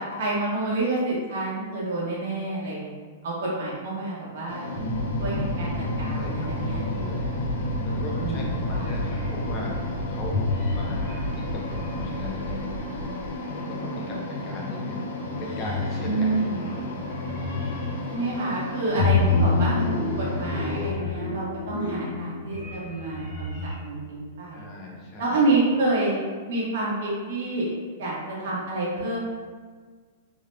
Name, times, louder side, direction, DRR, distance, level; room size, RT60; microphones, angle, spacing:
voice 1, 0.0-2.9 3.2-4.6 5.2-5.7 6.0-6.8 8.2-8.5 8.7-8.9 16.0-16.6 18.1-19.9 20.2-24.7 25.2-26.2 26.5-27.7 28.0-29.2, right 2 dB, 55° right, -6 dB, 1.2 m, -28 dB
sound 1, 4.5-20.9, left 2 dB, 65° left, 0.6 m, -34 dB
sound 2, 4.7-13.3, equal, 20° right, 1.5 m, -31 dB
voice 2, 5.2-6.5 6.8-7.3 7.5-9.8 10.1-10.4 10.7-12.7 13.5-15.1 15.4-16.8 24.5-25.5, left 2 dB, 25° left, -2 dB, 0.6 m, -38 dB
sound 3, 8.6-9.5 10.3-12.9 14.6-14.9 15.2-18.2 19.0-23.8, left 3 dB, 80° left, 1.4 m, -29 dB
3.7 x 2.2 x 3.2 m, 1.5 s
supercardioid pair, 175°, 0 cm